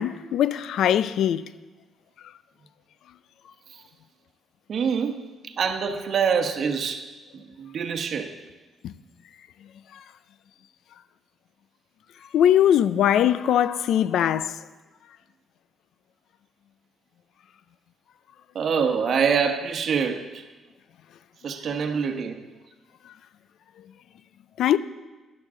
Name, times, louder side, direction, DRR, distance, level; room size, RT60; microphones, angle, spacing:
voice 1, 0.0-1.4 8.8-8.9 12.3-14.5 24.6-24.8, left 10 dB, 75° left, 0.4 m, -21 dB
voice 2, 4.7-7.1 7.3-8.4 18.5-20.4 21.4-22.5, right 6 dB, 60° right, 1.0 m, -25 dB
13.0 x 11.0 x 3.8 m
cardioid pair, 90°, 0 cm